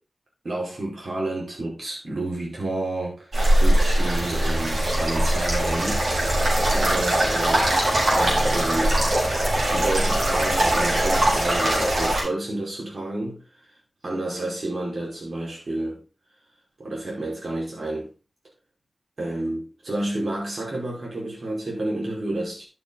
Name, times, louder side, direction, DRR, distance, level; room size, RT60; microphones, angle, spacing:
voice 1, 0.4-6.1 6.6-9.0 9.7-13.4 14.0-16.0 16.8-18.1 19.2-22.6, right 2 dB, 70° right, 5.4 m, -30 dB
sound 1, 3.3-12.2, right 1 dB, 85° right, 5.1 m, -21 dB
11.5 x 7.2 x 4.1 m
wide cardioid pair, 75°, 0 cm